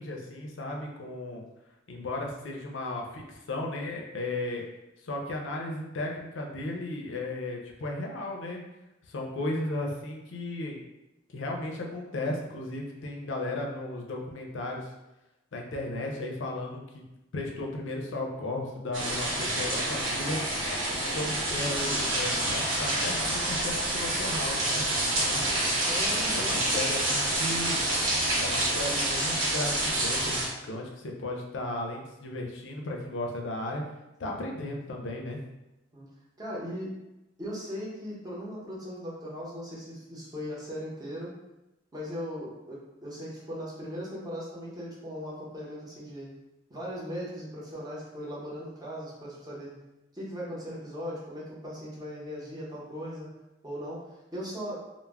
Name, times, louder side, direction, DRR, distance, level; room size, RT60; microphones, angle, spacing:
voice 1, 0.0-1.4 1.9-4.6 5.0-8.6 9.0-10.8 11.3-14.9 15.5-17.0 17.3-20.4 20.9-25.7 26.3-27.8 28.4-33.8 34.2-35.4, left 2 dB, 70° left, 1 dB, 0.5 m, -35 dB
sound 1, 18.9-30.5, right 1 dB, 90° right, 0.9 m, -28 dB
voice 2, 25.9-26.8 30.6-30.9 35.9-36.1 36.4-37.0 37.4-41.3 41.9-46.3 46.7-49.7 50.1-53.3 53.6-54.8, equal, 20° right, -7 dB, 0.8 m, -38 dB
2.2 x 2.0 x 3.4 m, 0.95 s
head